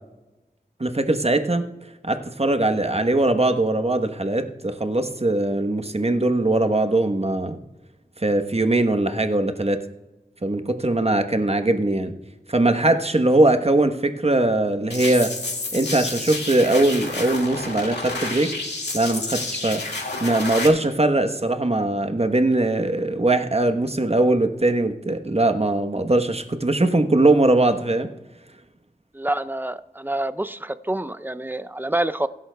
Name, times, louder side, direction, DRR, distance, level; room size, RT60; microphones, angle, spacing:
voice 1, 0.8-1.6 2.0-7.6 8.2-9.8 10.4-12.1 12.5-15.3 15.7-18.5 18.9-19.8 20.2-28.1, right 2 dB, 35° right, 7 dB, 1.1 m, -21 dB
sound 1, 14.9-20.7, left 3 dB, 85° left, 2.1 m, -30 dB
voice 2, 29.1-32.3, right 1 dB, 10° right, 13 dB, 0.5 m, -27 dB
23.0 x 11.0 x 2.3 m, 1.1 s
wide cardioid pair, 40°, 17 cm